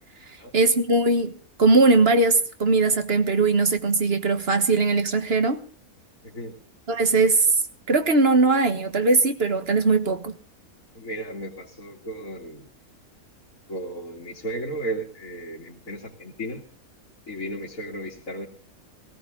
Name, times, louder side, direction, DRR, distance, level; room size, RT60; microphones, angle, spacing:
voice 1, 0.5-1.3 1.6-5.6 6.9-7.5 7.9-10.3, right 3 dB, 45° right, 9 dB, 1.5 m, -20 dB
voice 2, 10.9-12.6 13.7-16.6 17.3-18.5, right 1 dB, 65° left, -4 dB, 2.9 m, -34 dB
18.0 x 17.0 x 3.8 m, 0.37 s
omnidirectional pair, 1.5 m